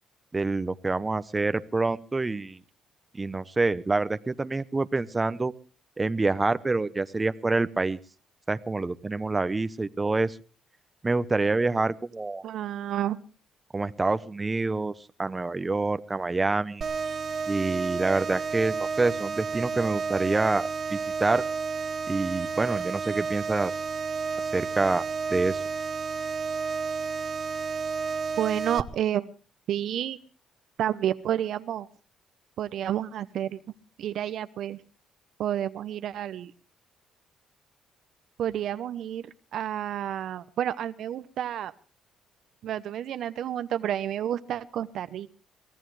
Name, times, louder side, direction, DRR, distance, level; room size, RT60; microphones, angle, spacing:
voice 1, 0.3-2.6 3.1-5.5 6.0-8.0 8.5-10.4 11.0-12.4 13.7-14.9 15.2-16.9 17.5-21.4 22.1-23.7 24.5-25.0 25.3-25.6, right 3 dB, 25° right, 13 dB, 0.9 m, -27 dB
voice 2, 12.4-13.2 28.4-29.3 29.7-30.2 30.8-31.9 32.6-33.6 34.0-34.8 35.4-36.5 38.4-41.7 42.6-45.3, right 10 dB, 70° right, 12 dB, 0.8 m, -30 dB
sound 1, 16.8-28.8, right 5 dB, 45° right, 1.2 m, -31 dB
23.5 x 16.5 x 3.3 m, 0.36 s
supercardioid pair, 75°, 0 cm